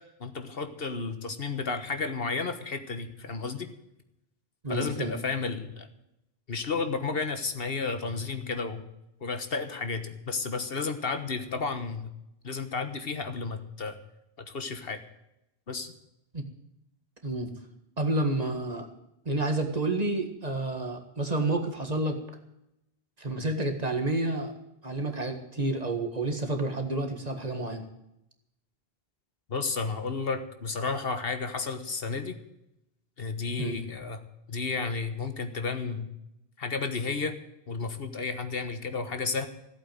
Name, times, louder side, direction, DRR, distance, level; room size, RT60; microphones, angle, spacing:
voice 1, 0.2-3.7 4.7-5.9 6.5-8.8 9.2-12.1 12.4-14.0 14.4-15.0 15.7-15.9 29.5-32.4 33.2-34.2 34.5-36.1 36.6-37.4 37.7-39.5, left 4 dB, 65° left, 8 dB, 1.6 m, -32 dB
voice 2, 4.6-5.2 16.3-16.4 17.2-17.5 18.0-18.9 19.2-22.2 23.2-24.5 24.8-27.8 33.6-33.8, right 2 dB, 40° right, 5 dB, 1.8 m, -29 dB
15.0 x 8.3 x 9.1 m, 0.85 s
omnidirectional pair, 1.0 m